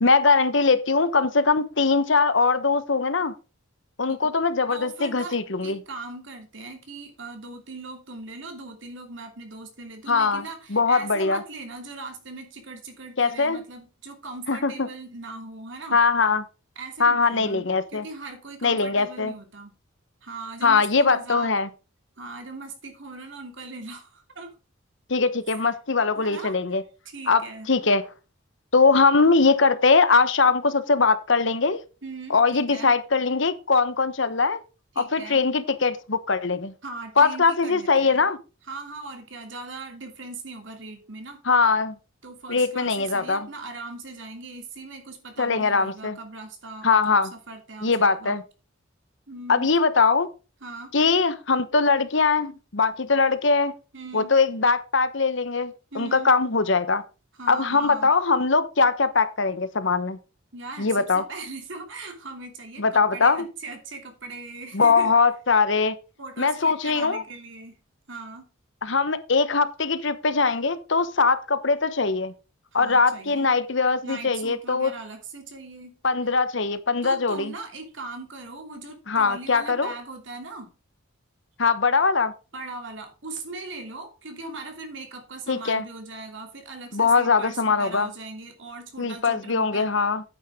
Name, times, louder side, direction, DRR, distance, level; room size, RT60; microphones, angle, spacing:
voice 1, 0.0-3.3 4.0-5.8 10.1-10.4 10.7-11.4 13.2-13.6 14.5-14.9 15.9-16.4 17.0-18.1 18.6-19.3 20.6-21.7 25.1-26.8 27.3-27.4 27.7-28.0 28.7-31.8 32.3-34.6 35.0-36.7 37.2-38.4 41.5-42.0 42.5-43.5 45.4-46.2 46.8-47.3 47.8-48.4 49.5-50.3 50.9-53.7 54.1-57.0 57.5-60.2 60.8-61.2 62.8-63.5 64.7-66.0 66.4-67.2 68.8-72.3 72.7-74.9 76.0-77.5 79.1-79.9 81.6-82.3 85.5-85.8 86.9-88.1 89.0-90.2, left 4 dB, 60° left, 1.0 m, -21 dB
voice 2, 4.7-16.0 16.8-17.6 17.9-19.7 20.2-21.5 22.2-24.5 25.5-25.6 26.1-26.6 27.0-27.7 32.0-32.9 35.0-35.4 36.8-38.3 38.7-41.4 42.2-48.4 49.3-49.7 50.6-50.9 53.9-54.4 55.9-56.3 57.4-58.1 60.5-65.1 66.2-67.7 68.1-68.5 72.7-73.5 74.0-76.0 77.0-80.7 82.5-89.9, right 3 dB, 65° right, 2.9 m, -39 dB
9.5 x 8.8 x 3.6 m
head